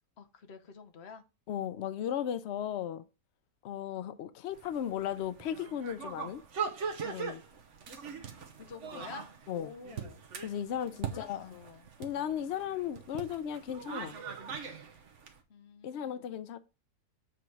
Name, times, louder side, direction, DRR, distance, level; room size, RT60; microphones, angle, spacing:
voice 1, 0.2-1.2 8.6-10.2 11.0-11.8 15.5-16.4, left 6 dB, 50° left, 1.0 m, -49 dB
voice 2, 1.5-3.0 3.6-6.4 7.0-7.4 9.5-9.7 10.4-11.6 12.0-14.2 15.8-16.6, left 10 dB, 85° left, 0.5 m, -36 dB
sound 1, 4.5-15.3, right 6 dB, 50° right, 1.2 m, -41 dB
7.7 x 4.0 x 4.6 m
omnidirectional pair, 1.7 m